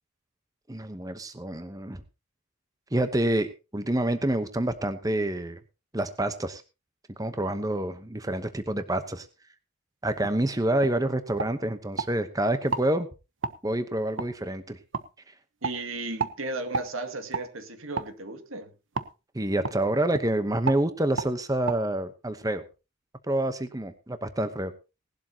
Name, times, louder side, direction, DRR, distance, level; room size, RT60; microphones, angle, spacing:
voice 1, 0.7-2.0 2.9-3.5 3.7-5.6 5.9-6.6 7.2-9.3 10.0-13.1 13.6-14.8 19.3-22.6 23.3-24.7, right 1 dB, 15° right, 10 dB, 0.9 m, -27 dB
sound 1, 10.2-10.4 10.8-11.0 11.4-12.1 12.7-12.9 13.4-13.6 14.2-14.3 14.9-15.1 15.6-15.8 16.2-16.4 16.7-16.9 17.3-17.5 17.9-18.1 18.9-19.1 19.6-19.8 20.1-20.3 20.6-20.8 21.2-21.3 21.7-21.8, right 4 dB, 65° right, 1.0 m, -31 dB
voice 2, 15.6-18.7, right 2 dB, 85° right, 7 dB, 2.3 m, -35 dB
18.5 x 12.0 x 2.9 m, 0.30 s
head